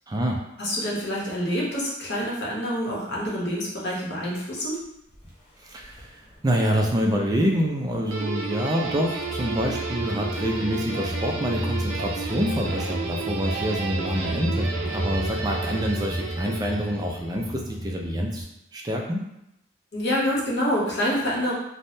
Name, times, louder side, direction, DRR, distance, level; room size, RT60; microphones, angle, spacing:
voice 1, 0.1-0.4 5.6-6.1 6.4-18.4 18.7-19.3, equal, 20° right, 0 dB, 0.3 m, -26 dB
voice 2, 0.6-4.8 19.9-21.5, equal, 55° left, -5 dB, 0.8 m, -27 dB
sound 1, 5.1-5.3 5.8-6.9 7.3-8.2 8.8-18.4, right 1 dB, 30° left, 0.6 m, -33 dB
Guitar, 8.1-17.4, right 3 dB, 80° right, 0.5 m, -32 dB
3.3 x 2.1 x 2.6 m, 0.83 s
head